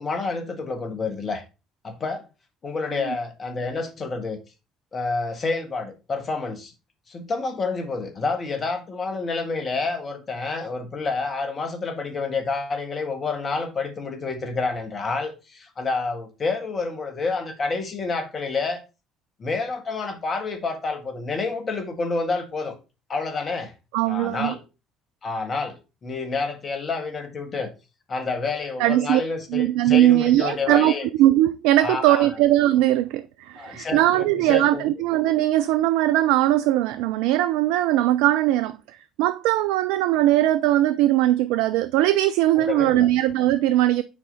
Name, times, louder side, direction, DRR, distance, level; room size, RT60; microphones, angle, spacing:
voice 1, 0.0-1.4 1.8-2.2 2.6-4.4 4.9-6.7 7.1-18.8 19.4-22.7 23.1-23.7 24.0-24.6 25.2-27.7 28.1-31.1 31.8-32.3 33.5-34.8 42.6-43.1, left 4 dB, 40° left, 1.7 m, -29 dB
voice 2, 23.9-24.6 28.8-29.2 29.5-38.8 39.2-44.0, right 14 dB, 70° right, 0.3 m, -20 dB
7.3 x 4.9 x 4.1 m
hypercardioid pair, 55°, 0 cm